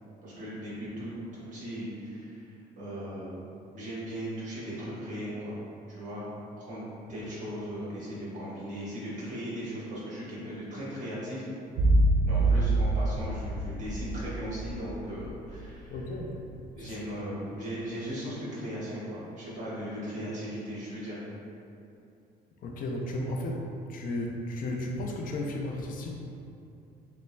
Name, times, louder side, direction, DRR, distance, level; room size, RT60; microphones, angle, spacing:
voice 1, 0.2-2.4 2.8-3.5 3.7-5.6 5.9-6.3 6.6-6.8 7.1-11.5 12.3-16.0 16.7-21.2, equal, 45° right, -8 dB, 1.3 m, -37 dB
sound 1, 11.8-16.0 16.2-16.3, right 2 dB, 65° right, 0.4 m, -26 dB
voice 2, 15.9-17.0 22.6-26.1, left 1 dB, 55° left, 0 dB, 0.6 m, -34 dB
6.5 x 2.2 x 2.2 m, 2.7 s
cardioid pair, 110°, 17 cm